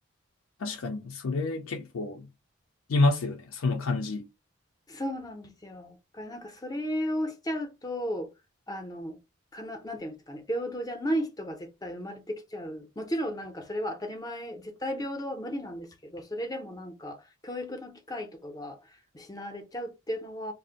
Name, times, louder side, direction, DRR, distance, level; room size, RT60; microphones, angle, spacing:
voice 1, 0.6-2.3 2.9-4.3, left 3 dB, 90° left, 0.5 m, -28 dB
voice 2, 4.9-8.3 8.7-9.2 9.5-20.5, equal, 20° left, 0.5 m, -35 dB
2.5 x 2.0 x 3.8 m
head